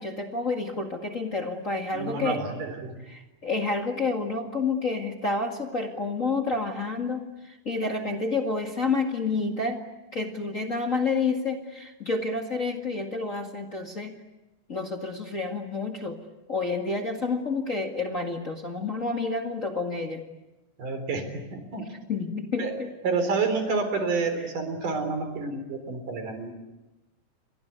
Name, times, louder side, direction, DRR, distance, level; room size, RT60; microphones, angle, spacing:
voice 1, 0.0-2.4 3.1-9.8 10.1-14.2 14.7-16.2 16.5-20.2 22.1-22.9, left 3 dB, 30° left, 2 dB, 1.9 m, -29 dB
voice 2, 1.9-3.0 20.8-21.9 22.6-26.5, right 4 dB, 80° right, 8 dB, 5.3 m, -29 dB
29.5 x 23.5 x 8.2 m, 1.0 s
omnidirectional pair, 3.6 m